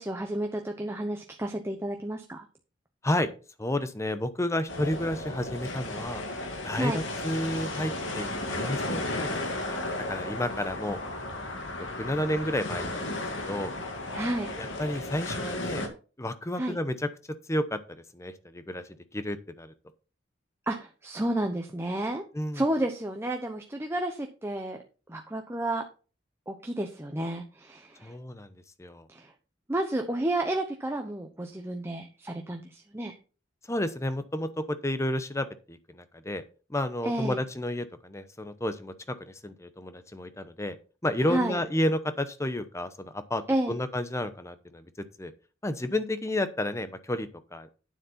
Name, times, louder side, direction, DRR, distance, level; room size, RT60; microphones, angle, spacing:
voice 1, 0.0-2.4 6.8-7.0 14.1-14.5 16.6-16.8 20.7-22.2 22.5-24.8 25.1-25.8 26.5-28.1 29.1-29.3 29.7-33.1 37.0-37.4 41.3-41.6 43.5-43.8, right 1 dB, 15° right, 3 dB, 0.9 m, -31 dB
voice 2, 3.6-6.2 6.6-9.8 10.1-11.0 11.8-13.7 14.6-15.9 16.2-17.1 17.5-19.7 22.3-22.6 28.0-29.1 33.7-36.4 36.7-40.8 41.0-43.4 43.7-45.3 45.6-47.7, left 1 dB, 15° left, 11 dB, 0.8 m, -31 dB
sound 1, 4.7-15.9, left 2 dB, 75° left, 2.2 m, -34 dB
9.5 x 7.4 x 4.3 m, 0.35 s
head